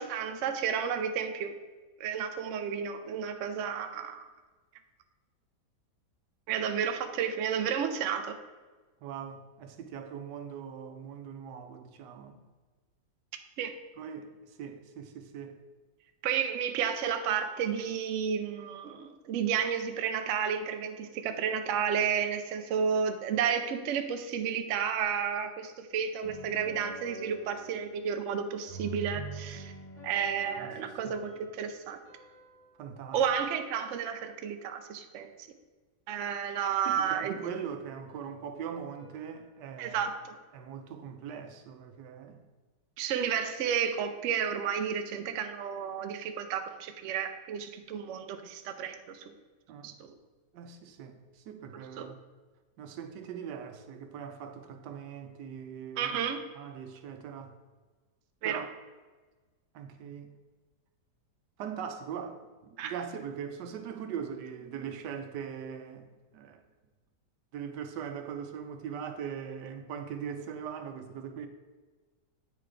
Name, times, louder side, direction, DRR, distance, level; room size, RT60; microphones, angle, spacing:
voice 1, 0.0-1.5 2.0-4.3 6.5-8.4 13.6-13.7 16.2-29.7 30.0-32.0 33.1-35.3 36.1-37.4 39.8-40.4 43.0-49.3 49.8-50.1 51.7-52.1 56.0-56.4 58.4-58.6 62.8-62.9, right 7 dB, 75° right, 0.7 m, -32 dB
voice 2, 9.0-12.4 14.0-15.6 30.6-30.7 31.0-31.2 32.8-33.2 36.9-40.0 40.5-42.4 49.7-50.0 50.5-52.2 52.8-56.2 56.6-57.6 58.4-58.7 59.7-60.3 61.6-66.6 67.5-71.5, right 7 dB, 90° right, 1.2 m, -41 dB
sound 1, 26.2-28.4 28.7-33.0 38.1-40.1, right 2 dB, 20° left, 1.1 m, -46 dB
8.8 x 3.7 x 3.3 m
omnidirectional pair, 1.8 m